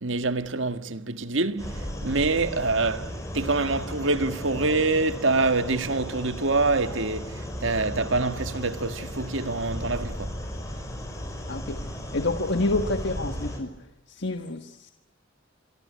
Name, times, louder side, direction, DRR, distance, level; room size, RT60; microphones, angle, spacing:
voice 1, 0.0-10.4, right 3 dB, 75° right, 1.8 m, -26 dB
sound 1, 1.6-13.6, equal, 15° left, 6.4 m, -35 dB
voice 2, 11.5-14.9, left 2 dB, 65° left, 1.6 m, -29 dB
27.0 x 23.0 x 9.5 m
head